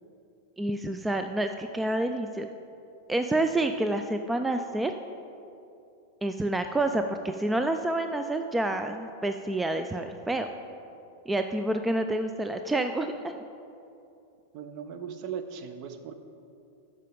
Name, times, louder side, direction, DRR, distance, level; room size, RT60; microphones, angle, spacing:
voice 1, 0.6-2.5 3.1-4.9 6.2-10.5 11.3-13.4, right 2 dB, 10° right, 7 dB, 0.3 m, -28 dB
voice 2, 14.5-16.1, right 7 dB, 40° right, 9 dB, 0.6 m, -38 dB
13.0 x 4.9 x 5.2 m, 2.7 s
figure-of-eight pair, 90°, 0 cm